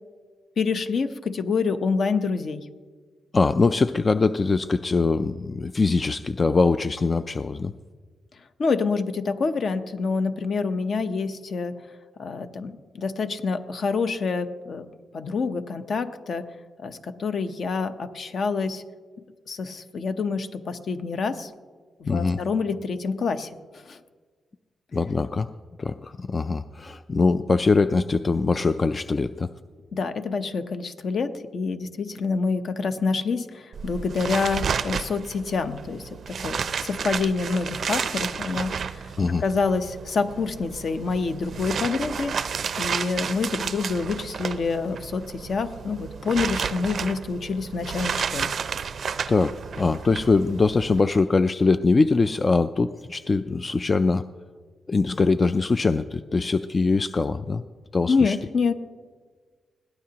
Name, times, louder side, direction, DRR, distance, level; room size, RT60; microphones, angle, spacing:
voice 1, 0.6-2.7 8.6-11.9 12.2-14.9 15.1-16.5 16.8-18.8 19.5-21.5 22.0-24.0 29.9-42.3 42.8-48.5 58.1-58.7, left 4 dB, 50° left, 9 dB, 0.8 m, -27 dB
voice 2, 3.3-7.7 22.1-22.4 24.9-25.5 25.8-29.5 39.2-39.4 49.3-54.2 54.9-57.6 57.9-58.4, left 3 dB, 30° left, 11 dB, 0.3 m, -22 dB
sound 1, 33.7-51.0, right 6 dB, 55° right, 0.5 m, -32 dB
21.5 x 16.5 x 2.9 m, 1.5 s
cardioid pair, 125°, 0 cm